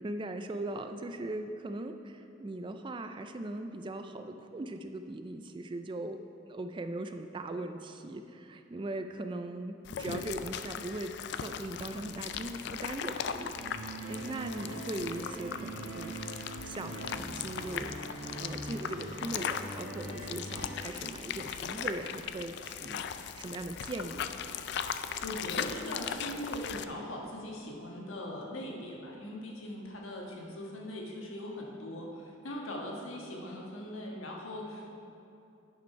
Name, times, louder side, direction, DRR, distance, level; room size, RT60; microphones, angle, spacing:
voice 1, 0.0-6.2 6.5-16.2 16.6-18.0 18.4-24.4, right 2 dB, 25° right, 8 dB, 0.3 m, -39 dB
sound 1, 9.8-26.8, left 8 dB, 55° left, 0.3 m, -39 dB
sound 2, 13.6-20.7, right 2 dB, 60° right, 1.9 m, -42 dB
voice 2, 25.0-34.9, left 1 dB, 80° left, -1 dB, 1.4 m, -40 dB
10.5 x 5.2 x 5.6 m, 2.8 s
head